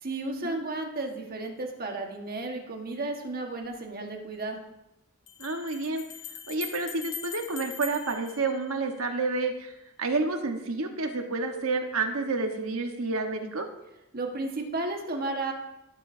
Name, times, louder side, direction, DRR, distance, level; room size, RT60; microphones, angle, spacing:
voice 1, 0.0-4.6 14.1-15.5, right 2 dB, 45° right, 2 dB, 1.5 m, -33 dB
sound 1, 3.6-3.7 5.3-9.2, left 8 dB, 65° left, 1.2 m, -42 dB
voice 2, 5.4-6.0 6.5-13.7, right 3 dB, 90° right, 4 dB, 1.3 m, -29 dB
16.0 x 7.5 x 2.7 m, 0.92 s
head